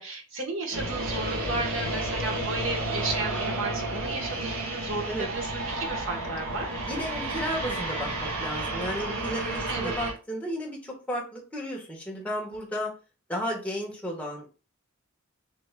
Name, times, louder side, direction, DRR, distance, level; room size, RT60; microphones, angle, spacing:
voice 1, 0.0-6.8 9.7-9.9, right 3 dB, 65° right, 2 dB, 1.3 m, -34 dB
sound 1, 0.7-10.1, right 2 dB, 85° right, 1.4 m, -31 dB
voice 2, 6.9-12.9 13.3-14.5, equal, 5° left, -3 dB, 1.3 m, -33 dB
6.1 x 2.9 x 2.2 m, 0.33 s
head